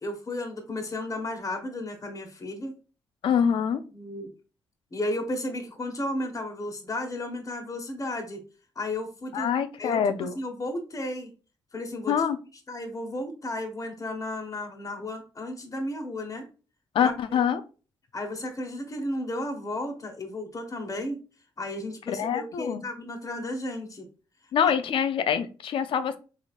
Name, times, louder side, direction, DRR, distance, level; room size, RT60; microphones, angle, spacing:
voice 1, 0.0-2.8 3.9-4.3 4.9-8.4 8.7-9.5 9.8-10.0 10.3-11.3 11.7-12.2 12.7-16.5 17.0-17.4 18.1-21.2 21.6-24.1, left 1 dB, 35° left, 3 dB, 1.2 m, -33 dB
voice 2, 3.2-3.8 9.3-10.4 12.1-12.4 16.9-17.6 22.1-22.8 24.5-26.2, left 8 dB, 70° left, 10 dB, 0.5 m, -25 dB
3.6 x 3.4 x 2.4 m, 0.34 s
supercardioid pair, 55°, 9 cm